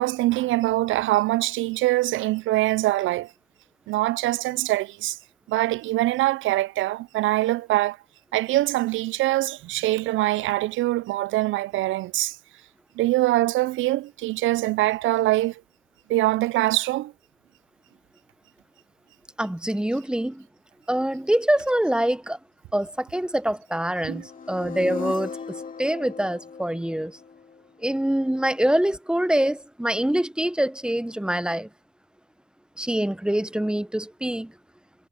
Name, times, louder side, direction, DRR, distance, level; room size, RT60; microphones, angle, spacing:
voice 1, 0.0-3.3 3.9-5.2 5.5-8.0 8.3-12.4 13.0-15.5 16.1-17.1 24.0-24.3, right 17 dB, 75° right, 0.4 m, -23 dB
voice 2, 19.4-20.4 20.9-22.4 22.7-25.3 25.8-27.1 27.8-31.7 32.8-34.5, right 1 dB, 5° right, 0.9 m, -25 dB
sound 1, 24.0-28.0, left 5 dB, 45° left, 3.0 m, -37 dB
cardioid pair, 90°, 20 cm